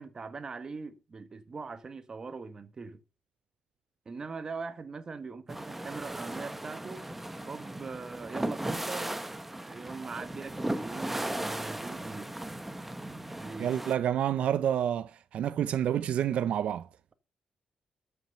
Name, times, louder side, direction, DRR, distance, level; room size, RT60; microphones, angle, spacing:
voice 1, 0.0-3.0 4.0-7.0 7.5-9.2 9.6-12.3 13.3-13.7, right 4 dB, 35° right, 1.4 m, -41 dB
sound 1, 5.5-14.0, right 1 dB, 10° right, 1.0 m, -37 dB
voice 2, 13.6-16.9, right 10 dB, 70° right, 0.6 m, -28 dB
13.0 x 6.0 x 6.6 m
cardioid pair, 130°, 2 cm